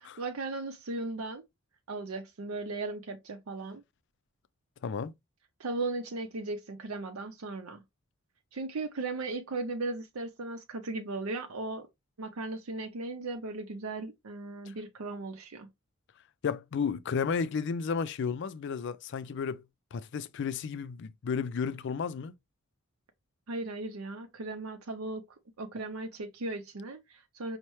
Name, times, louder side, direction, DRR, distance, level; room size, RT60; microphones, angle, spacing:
voice 1, 0.0-1.4 1.9-3.8 5.6-7.8 8.5-11.9 12.2-15.7 23.5-25.2 25.6-27.6, right 2 dB, 85° right, 0.6 m, -37 dB
voice 2, 4.8-5.1 14.7-14.8 16.4-19.6 19.9-22.3, left 6 dB, 55° left, 0.4 m, -33 dB
5.4 x 2.1 x 3.0 m
head